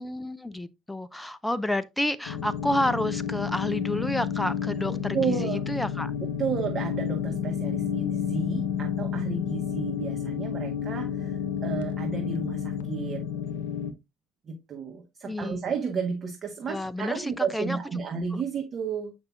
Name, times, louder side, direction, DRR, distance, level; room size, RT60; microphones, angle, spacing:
voice 1, 0.0-6.1 15.2-15.6 16.7-17.8, left 1 dB, 5° left, 0.5 m, -30 dB
sound 1, 2.2-13.9, left 8 dB, 70° left, 0.7 m, -30 dB
voice 2, 4.9-5.6 6.2-13.2 14.4-19.1, right 5 dB, 45° right, 1.5 m, -32 dB
7.9 x 5.5 x 2.5 m
figure-of-eight pair, 50°, 0 cm